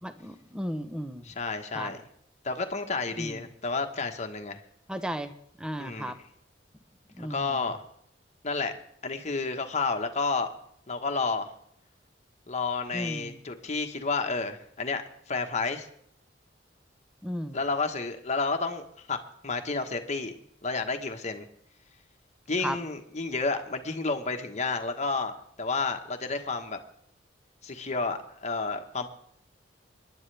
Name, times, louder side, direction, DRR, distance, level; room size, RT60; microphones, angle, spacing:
voice 1, 0.0-1.3 1.7-1.9 3.2-3.4 4.9-6.2 7.1-7.7 12.9-13.4 17.2-17.6 22.6-22.8, equal, 5° right, 9 dB, 0.8 m, -35 dB
voice 2, 1.2-2.1 2.4-4.6 5.8-6.2 7.2-7.8 8.4-8.7 9.0-10.5 10.9-11.5 12.5-15.0 15.3-15.9 17.5-19.2 19.4-20.3 20.6-21.4 22.5-26.8 27.6-29.1, left 4 dB, 40° left, 5 dB, 1.2 m, -31 dB
26.5 x 11.0 x 3.4 m, 0.68 s
head